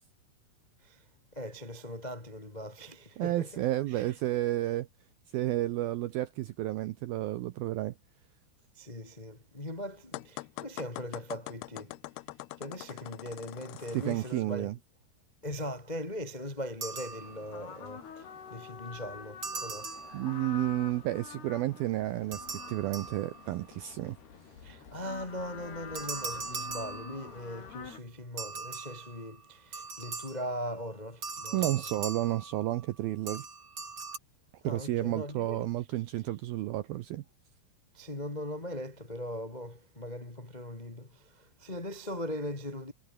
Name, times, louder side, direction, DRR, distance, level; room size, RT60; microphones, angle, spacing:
voice 1, 1.3-3.5 3.9-4.1 8.7-11.9 12.6-14.7 15.4-19.9 24.6-31.7 34.6-35.7 37.9-42.9, equal, 30° left, 0.8 m, -40 dB
voice 2, 3.2-4.9 5.3-7.9 13.9-14.8 20.1-24.2 31.5-33.5 34.6-37.2, right 15 dB, 75° right, 2.2 m, -31 dB
sound 1, 10.1-14.3, left 20 dB, 90° left, 2.3 m, -43 dB
sound 2, 16.8-17.8 19.4-20.7 22.3-23.7 26.0-27.6 28.4-30.6 31.2-32.9 33.3-34.2, right 4 dB, 30° right, 3.6 m, -40 dB
sound 3, 17.1-28.0, left 6 dB, 60° left, 6.1 m, -47 dB
omnidirectional pair, 5.3 m